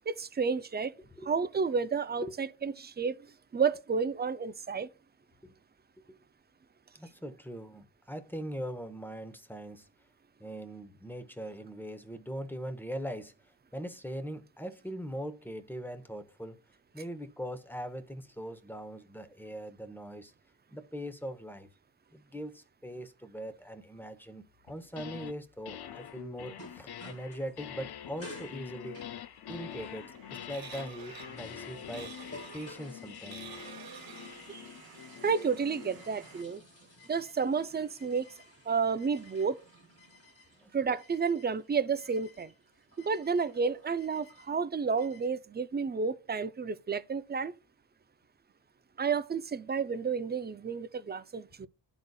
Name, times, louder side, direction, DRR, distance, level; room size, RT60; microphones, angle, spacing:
voice 1, 0.1-0.9 1.3-3.2 3.5-4.9 34.5-34.7 35.2-36.6 37.1-38.3 38.7-39.6 40.7-42.5 43.0-47.5 49.0-51.7, right 5 dB, 25° right, 0.4 m, -31 dB
voice 2, 1.0-1.3 2.2-2.3 5.4-5.6 6.0-6.2 6.9-9.9 10.4-13.3 13.7-16.6 16.9-20.3 20.7-21.7 22.1-29.0 29.5-32.1 32.5-33.5 40.6-40.7 51.6-51.7, equal, 5° left, 0.9 m, -41 dB
sound 1, 24.7-25.3 25.6-36.1, left 10 dB, 60° left, 0.5 m, -45 dB
sound 2, 26.0-27.8 28.1-30.1 30.7-45.3, left 1 dB, 30° left, 2.2 m, -54 dB
sound 3, 29.7-36.4, right 6 dB, 50° right, 0.9 m, -50 dB
12.0 x 4.0 x 2.3 m
cardioid pair, 65°, 44 cm